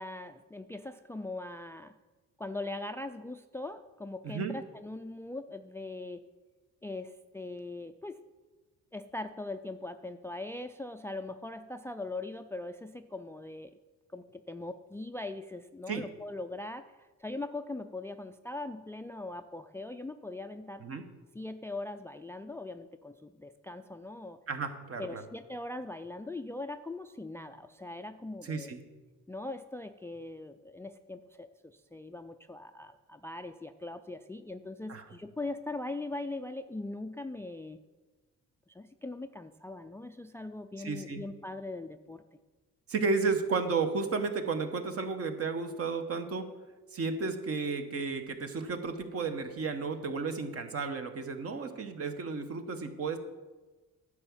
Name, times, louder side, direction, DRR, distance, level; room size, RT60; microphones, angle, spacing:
voice 1, 0.0-1.9 2.4-6.2 6.8-8.2 8.9-13.8 14.1-20.8 21.3-24.4 25.0-28.7 29.3-37.8 38.7-42.2, left 2 dB, 10° left, 9 dB, 0.3 m, -41 dB
voice 2, 24.5-25.2 28.4-28.8 34.9-35.0 40.8-41.2 42.9-46.5 46.9-53.2, right 4 dB, 50° right, 7 dB, 1.1 m, -33 dB
9.8 x 4.8 x 7.2 m, 1.3 s
cardioid pair, 90°, 30 cm